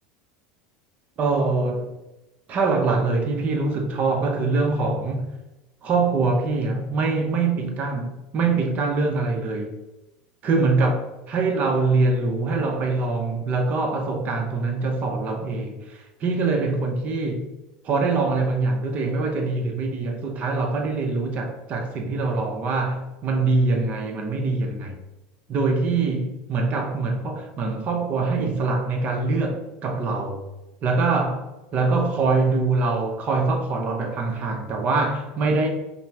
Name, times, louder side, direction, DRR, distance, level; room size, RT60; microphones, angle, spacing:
voice 1, 1.2-2.0 2.5-5.3 5.8-9.7 10.4-17.5 17.8-25.0 25.5-30.4 30.8-31.4 31.7-35.7, right 3 dB, 40° right, 0.7 m, -24 dB
5.3 x 2.1 x 2.9 m
supercardioid pair, 110°, 4 cm